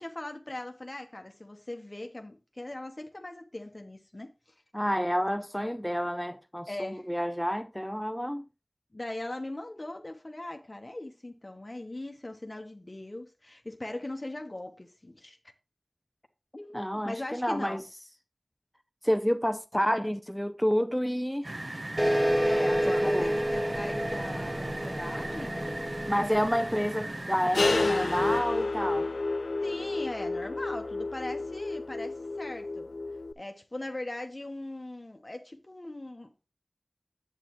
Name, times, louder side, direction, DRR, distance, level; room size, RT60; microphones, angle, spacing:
voice 1, 0.0-4.5 6.7-7.1 8.9-15.4 16.5-17.8 22.4-25.8 26.7-26.9 29.6-32.9 33.4-36.5, left 1 dB, 40° left, 0.9 m, -40 dB
voice 2, 4.7-8.5 16.7-17.8 19.0-21.5 23.0-23.3 26.1-29.1, equal, 5° left, 0.4 m, -29 dB
sound 1, 21.4-28.4, right 2 dB, 55° right, 0.8 m, -37 dB
sound 2, 22.0-27.1, equal, 30° right, 1.4 m, -29 dB
sound 3, 27.5-33.3, left 3 dB, 85° left, 0.4 m, -30 dB
8.9 x 8.3 x 3.0 m
wide cardioid pair, 50°, 0 cm